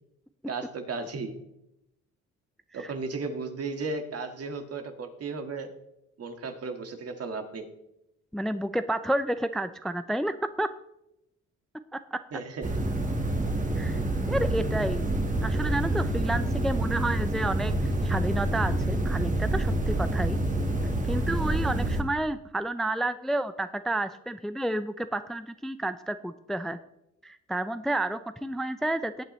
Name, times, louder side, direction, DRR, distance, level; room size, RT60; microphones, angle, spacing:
voice 1, 0.5-1.3 2.7-5.7 6.2-7.7 12.3-12.8, right 3 dB, 55° right, 6 dB, 1.8 m, -35 dB
voice 2, 8.3-10.7 11.9-12.2 13.8-14.0 14.3-15.1 15.4-20.4 21.1-26.8 27.2-29.2, right 1 dB, ahead, 11 dB, 0.5 m, -30 dB
sound 1, 12.6-22.0, right 1 dB, 25° right, 1.7 m, -27 dB
18.0 x 9.0 x 3.2 m, 0.85 s
cardioid pair, 90°, 30 cm